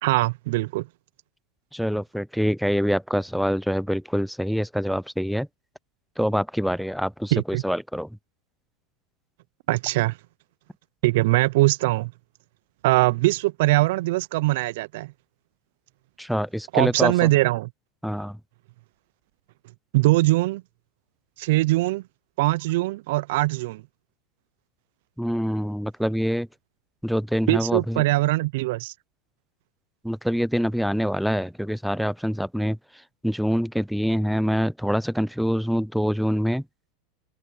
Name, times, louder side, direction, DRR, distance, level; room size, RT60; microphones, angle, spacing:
voice 1, 0.0-0.9 7.3-7.6 9.7-10.2 11.0-12.1 12.8-15.1 16.7-17.7 19.9-20.6 21.4-22.0 22.4-23.8 27.5-28.9, right 20 dB, 70° right, 0.5 m, -22 dB
voice 2, 1.7-5.5 6.2-8.1 16.2-17.3 18.0-18.4 25.2-26.5 27.0-28.0 30.0-32.8 33.2-36.6, equal, ahead, 0.5 m, -25 dB
hypercardioid pair, 100°, 0 cm